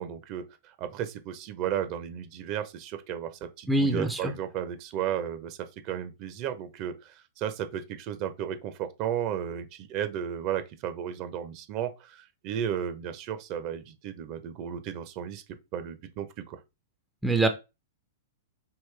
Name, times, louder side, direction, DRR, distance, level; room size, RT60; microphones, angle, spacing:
voice 1, 0.0-5.6 5.8-15.4 15.7-16.6, right 9 dB, 40° right, 0.8 m, -34 dB
voice 2, 3.7-4.3 17.2-17.5, right 2 dB, 5° right, 0.7 m, -24 dB
4.8 x 3.1 x 3.3 m
hypercardioid pair, 115°, 0 cm